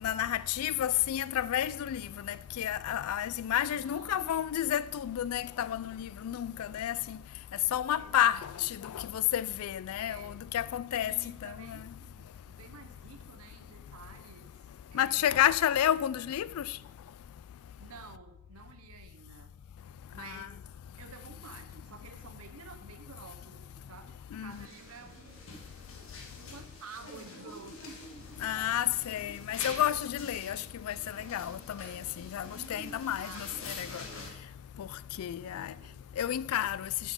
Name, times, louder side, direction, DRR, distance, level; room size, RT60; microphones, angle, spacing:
voice 1, 0.0-7.2 7.7-11.1 11.4-11.8 14.9-16.7 20.3-20.5 24.3-24.5 28.4-34.0 34.8-34.9 35.2-35.7 36.2-36.9, left 11 dB, 85° left, 0.3 m, -31 dB
voice 2, 3.6-4.3 8.0-8.8 10.0-10.4 11.0-14.5 14.9-15.7 17.8-19.5 20.1-20.7 21.0-25.5 26.3-28.1 33.2-34.3 35.4-36.2, right 5 dB, 85° right, 0.8 m, -51 dB
sound 1, 24.5-34.3, left 3 dB, 65° left, 1.5 m, -46 dB
9.5 x 5.1 x 5.3 m
head